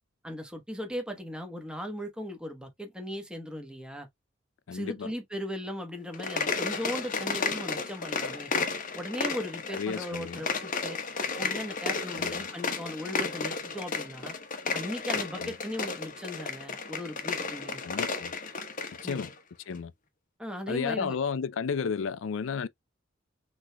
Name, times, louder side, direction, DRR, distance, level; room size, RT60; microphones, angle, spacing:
voice 1, 0.2-4.1 4.7-8.5 8.9-11.0 11.4-14.3 14.7-17.8 19.0-19.2 20.4-21.2, equal, 5° right, 1.1 m, -37 dB
voice 2, 4.7-5.1 9.7-10.4 12.2-12.5 15.4-15.6 17.8-18.3 19.0-19.3 19.7-19.9 20.7-22.7, left 6 dB, 75° left, 0.4 m, -32 dB
sound 1, 6.1-19.3, left 4 dB, 40° left, 0.9 m, -33 dB
6.1 x 3.2 x 2.2 m
head